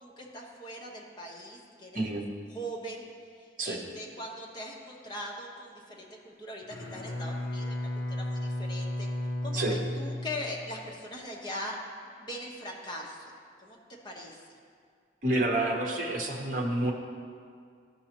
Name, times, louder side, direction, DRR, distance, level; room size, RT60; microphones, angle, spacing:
voice 1, 0.0-2.0 2.5-3.1 3.6-7.8 8.1-9.1 9.4-11.8 12.2-13.3 13.6-13.8 14.0-14.4, equal, 25° left, -2 dB, 1.0 m, -40 dB
Bowed string instrument, 6.6-11.0, left 1 dB, 70° left, 0.7 m, -34 dB
voice 2, 15.2-16.9, right 2 dB, 45° right, 0 dB, 1.0 m, -28 dB
13.5 x 5.5 x 3.0 m, 2.1 s
head